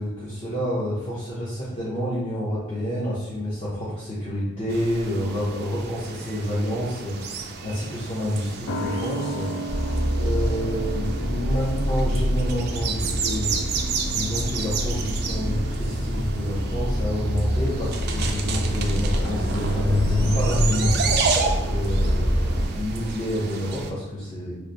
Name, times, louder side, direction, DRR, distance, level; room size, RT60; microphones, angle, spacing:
voice 1, 0.0-20.9 21.5-24.6, equal, 30° left, -10 dB, 0.8 m, -29 dB
sound 1, 4.7-23.9, right 5 dB, 50° right, 0.3 m, -32 dB
sound 2, 8.7-15.7 16.0-16.1, right 1 dB, 80° left, 0.3 m, -36 dB
sound 3, 9.7-22.7, equal, 60° left, 0.9 m, -25 dB
3.0 x 2.2 x 3.9 m, 1.1 s
head